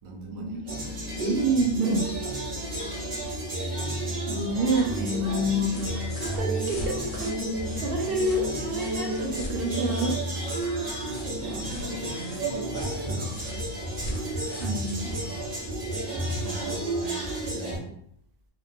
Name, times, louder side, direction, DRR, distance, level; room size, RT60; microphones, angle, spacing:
voice 1, 0.0-1.2 11.4-13.5 14.0-14.5 14.8-15.4 16.4-18.0, right 2 dB, 75° right, 0 dB, 0.3 m, -42 dB
sound 1, 0.7-17.8, right 1 dB, 40° right, 1.1 m, -31 dB
voice 2, 1.2-2.0 3.6-3.8 4.3-7.3 7.7-10.1 14.6-15.1, right 1 dB, 60° right, 0 dB, 0.7 m, -28 dB
sound 2, 4.7-16.4 17.7-17.8, equal, 65° left, 0.3 m, -43 dB
2.8 x 2.0 x 2.5 m, 0.69 s
omnidirectional pair, 1.3 m